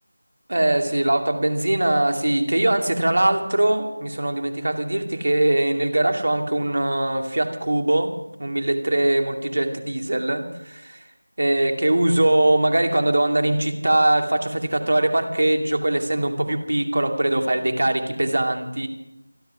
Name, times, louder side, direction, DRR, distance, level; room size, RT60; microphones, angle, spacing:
voice 1, 0.5-8.1 8.4-11.0 11.4-18.9, right 1 dB, 55° right, 4 dB, 2.5 m, -21 dB
27.5 x 10.5 x 4.9 m, 0.87 s
figure-of-eight pair, 170°, 0 cm